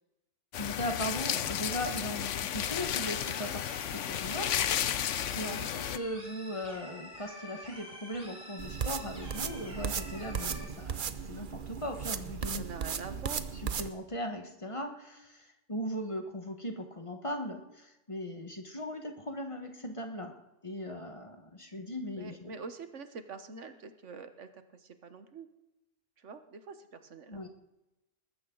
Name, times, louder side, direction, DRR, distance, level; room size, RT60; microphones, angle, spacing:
sound 1, 0.5-6.0, left 10 dB, 75° left, 1.0 m, -33 dB
voice 1, 0.6-4.9 5.3-12.6 13.8-22.5 27.3-27.5, equal, 25° left, 4 dB, 1.5 m, -39 dB
sound 2, 2.6-10.6, equal, 5° right, 5.9 m, -48 dB
sound 3, 8.6-13.9, right 7 dB, 45° right, 0.8 m, -36 dB
voice 2, 12.5-13.5 22.2-25.5 26.2-27.4, right 5 dB, 70° right, 9 dB, 1.5 m, -45 dB
20.0 x 14.5 x 3.9 m, 0.98 s
omnidirectional pair, 1.3 m